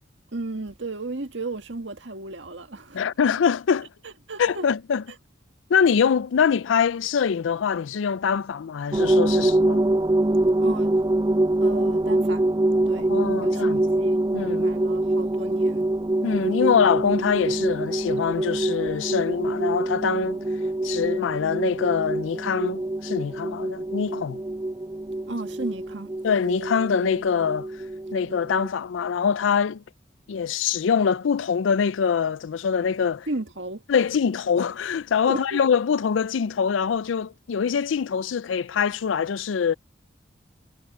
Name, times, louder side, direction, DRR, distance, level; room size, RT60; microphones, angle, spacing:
voice 1, 0.3-3.0 4.0-4.7 10.6-10.9 11.6-12.5 12.9-13.1 13.4-14.2 14.6-15.9 25.3-26.1 33.3-33.8 35.3-35.6, right 2 dB, 75° right, 1.8 m, -34 dB
voice 2, 2.9-3.9 4.4-5.0 5.7-9.8 13.1-13.8 14.3-14.7 16.2-20.4 20.8-24.4 26.2-27.7 28.1-29.8 30.3-33.3 33.9-39.7, left 6 dB, 85° left, 0.4 m, -24 dB
sound 1, 8.9-28.7, right 1 dB, 20° right, 0.4 m, -24 dB
head